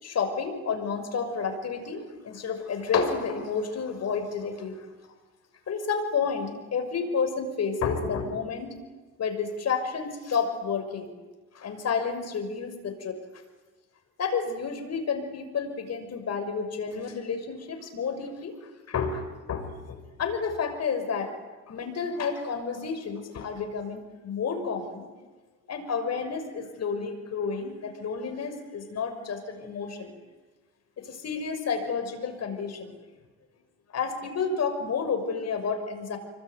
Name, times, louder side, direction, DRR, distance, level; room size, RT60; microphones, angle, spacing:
voice 1, 0.0-4.9 5.7-8.7 9.2-11.1 11.5-13.2 14.2-19.2 19.5-21.3 21.7-25.1 25.7-30.2 31.0-32.9 33.9-36.2, left 5 dB, 60° left, 6 dB, 6.2 m, -30 dB
27.0 x 23.5 x 9.5 m, 1.2 s
cardioid pair, 90°, 30 cm